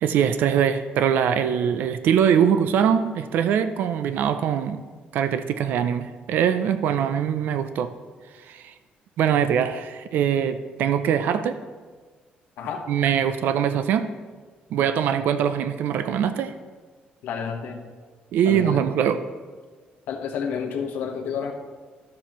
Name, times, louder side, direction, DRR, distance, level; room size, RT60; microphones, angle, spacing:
voice 1, 0.0-4.8 5.1-7.9 8.5-8.7 9.2-11.6 12.9-14.1 14.7-16.5 18.3-19.2, right 8 dB, 70° right, 10 dB, 0.4 m, -22 dB
voice 2, 17.2-17.8 18.5-18.8 20.1-21.5, left 6 dB, 80° left, 2 dB, 1.1 m, -30 dB
12.0 x 7.2 x 3.0 m, 1.5 s
cardioid pair, 170°, 3 cm